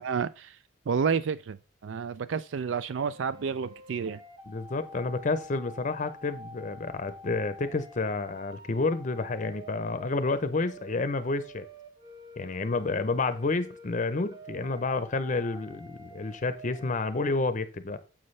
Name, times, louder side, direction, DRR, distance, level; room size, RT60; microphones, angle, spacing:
voice 1, 0.0-0.6 0.9-4.2, right 6 dB, 70° right, 0.4 m, -30 dB
sound 1, 2.9-17.3, equal, 20° right, 1.0 m, -48 dB
voice 2, 4.5-11.7 12.4-18.0, left 3 dB, 40° left, 0.6 m, -30 dB
9.6 x 7.6 x 3.2 m
head